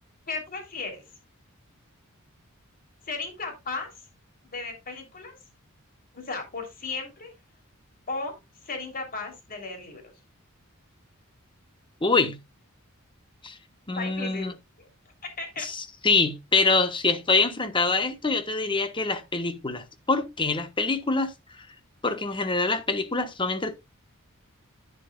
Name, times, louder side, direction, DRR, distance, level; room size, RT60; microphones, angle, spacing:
voice 1, 0.3-1.0 3.1-3.9 4.5-5.3 6.1-7.3 8.1-8.4 8.6-10.0 13.9-14.5 14.8-14.9 15.4-15.7, left 3 dB, 40° left, 3.4 m, -35 dB
voice 2, 12.0-12.4 13.4-13.6 13.9-14.5 15.6-21.3 22.0-23.7, left 3 dB, 25° left, 1.2 m, -25 dB
10.5 x 10.0 x 2.4 m
head